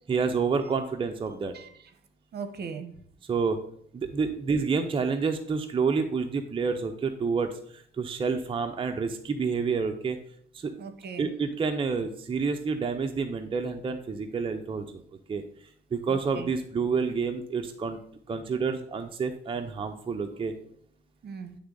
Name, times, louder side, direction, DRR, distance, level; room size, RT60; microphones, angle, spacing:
voice 1, 0.1-1.5 3.2-3.6 3.9-10.2 10.5-10.7 11.2-15.0 15.3-15.4 15.9-18.0 18.3-20.5, right 5 dB, 25° right, 5 dB, 0.5 m, -29 dB
voice 2, 2.3-2.9 10.8-11.3 16.1-16.5 21.2-21.6, right 6 dB, 55° right, 9 dB, 0.8 m, -39 dB
9.4 x 3.5 x 3.8 m, 0.63 s
cardioid pair, 90°, 20 cm